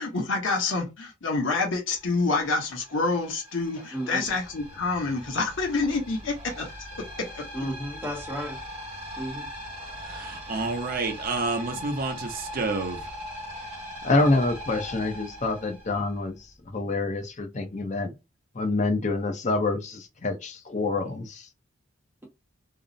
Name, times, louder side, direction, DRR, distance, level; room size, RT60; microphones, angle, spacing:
voice 1, 0.0-6.7 7.0-7.5, left 3 dB, 80° left, 0.8 m, -27 dB
sound 1, 1.9-16.5, equal, 30° right, 1.2 m, -40 dB
voice 2, 3.9-4.3 7.5-8.6 9.2-9.5, equal, 10° right, 0.9 m, -33 dB
voice 3, 10.1-13.0, right 3 dB, 50° right, 0.5 m, -29 dB
voice 4, 14.0-16.4 16.7-18.1 18.5-21.4, left 2 dB, 40° left, 0.6 m, -26 dB
2.5 x 2.0 x 2.5 m
head